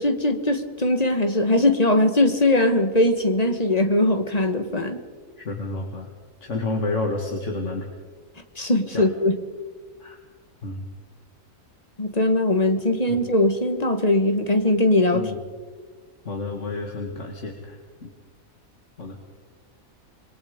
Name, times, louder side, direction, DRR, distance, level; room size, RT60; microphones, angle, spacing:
voice 1, 0.0-5.0 8.6-9.4 12.0-15.3, left 1 dB, 30° left, 7 dB, 1.7 m, -20 dB
voice 2, 5.4-6.1 6.4-7.9 8.9-9.1 10.0-10.2 10.6-10.9 13.1-13.2 15.1-15.4 16.2-18.1 19.0-19.2, left 2 dB, 55° left, 2 dB, 2.2 m, -30 dB
27.0 x 21.5 x 5.2 m, 1.5 s
omnidirectional pair, 1.5 m